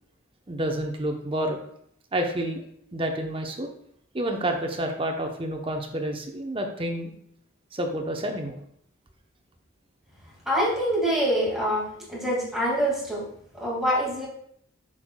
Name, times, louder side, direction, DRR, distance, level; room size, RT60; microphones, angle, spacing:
voice 1, 0.5-1.6 2.1-2.6 2.9-3.7 4.1-7.1 7.7-8.5, right 1 dB, 25° right, 3 dB, 0.8 m, -29 dB
voice 2, 10.5-13.3 13.6-14.3, equal, ahead, -5 dB, 2.1 m, -25 dB
7.6 x 6.4 x 2.3 m, 0.68 s
head